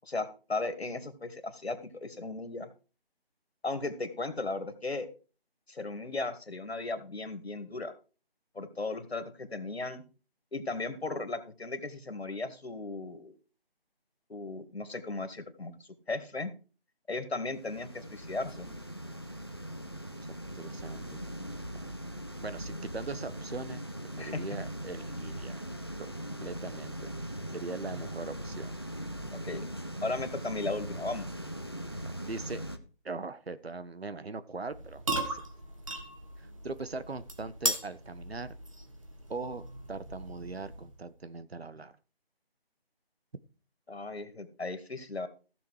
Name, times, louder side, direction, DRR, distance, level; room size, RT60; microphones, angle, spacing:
voice 1, 0.0-2.7 3.6-5.1 5.7-7.9 8.5-10.0 10.5-13.3 14.3-16.5 17.1-18.7 24.2-24.4 29.3-29.6 30.0-31.3 43.9-45.3, left 3 dB, 90° left, 9 dB, 2.3 m, -36 dB
sound 1, 17.5-32.8, equal, 25° left, 0.7 m, -40 dB
voice 2, 20.5-21.2 21.7-21.9 22.4-23.8 24.2-25.6 26.0-26.1 26.4-28.7 32.0-32.6 33.0-35.5 36.4-38.5 39.3-42.0, right 3 dB, 80° right, 14 dB, 1.3 m, -41 dB
sound 2, 34.7-41.1, right 2 dB, 35° right, 1.6 m, -38 dB
15.0 x 7.0 x 4.9 m, 0.36 s
figure-of-eight pair, 175°, 30 cm